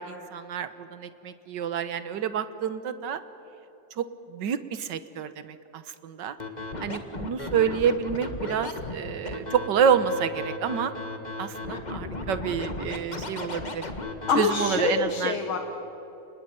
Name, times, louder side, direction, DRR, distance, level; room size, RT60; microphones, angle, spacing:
voice 1, 0.0-3.2 3.9-6.4 6.8-10.9 11.4-13.9 14.4-15.4, right 7 dB, 65° right, 12 dB, 1.7 m, -28 dB
Scratching (performance technique), 6.4-14.9, left 2 dB, 25° left, 1.7 m, -35 dB
voice 2, 14.3-15.6, left 5 dB, 85° left, 3 dB, 2.3 m, -25 dB
29.0 x 20.5 x 9.1 m, 3.0 s
omnidirectional pair, 2.2 m